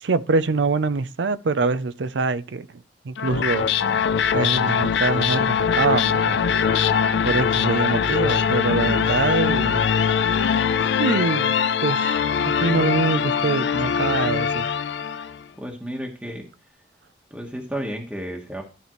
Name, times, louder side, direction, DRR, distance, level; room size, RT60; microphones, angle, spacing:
voice 1, 0.0-3.7 4.3-6.4 6.8-6.9 7.2-9.9 10.4-10.6 11.0-11.5 11.8-12.3 12.6-14.7, right 4 dB, 85° right, 0.5 m, -24 dB
sound 1, 3.2-15.4, left 7 dB, 80° left, 0.5 m, -22 dB
voice 2, 15.6-16.5 17.3-18.6, equal, 5° right, 1.2 m, -32 dB
12.5 x 5.2 x 3.1 m
head